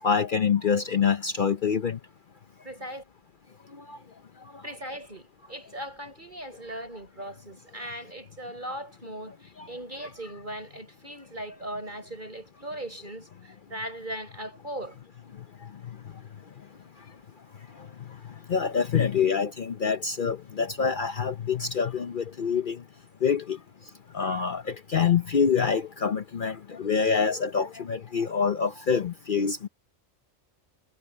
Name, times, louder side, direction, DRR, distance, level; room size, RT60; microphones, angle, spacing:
voice 1, 0.0-2.0 3.7-4.0 4.4-4.6 9.6-9.7 15.3-16.3 16.6-16.7 17.0-17.2 17.5-22.8 23.2-29.7, left 6 dB, 50° left, 0.9 m, -27 dB
voice 2, 2.6-3.0 4.6-15.0, right 1 dB, 45° right, 7.5 m, -39 dB
omnidirectional pair, 1.2 m